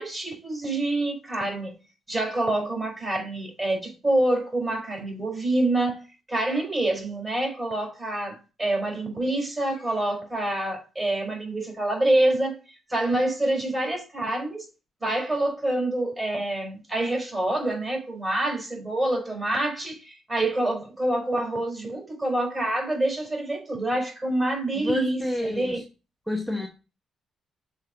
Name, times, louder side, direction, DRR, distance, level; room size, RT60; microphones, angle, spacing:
voice 1, 0.0-1.7 2.1-6.0 6.3-12.6 12.9-14.7 15.0-25.8, right 1 dB, 20° right, 4.2 m, -26 dB
voice 2, 24.8-25.8 26.3-26.7, left 1 dB, ahead, 1.1 m, -29 dB
6.6 x 4.3 x 5.0 m
cardioid pair, 90°, 0 cm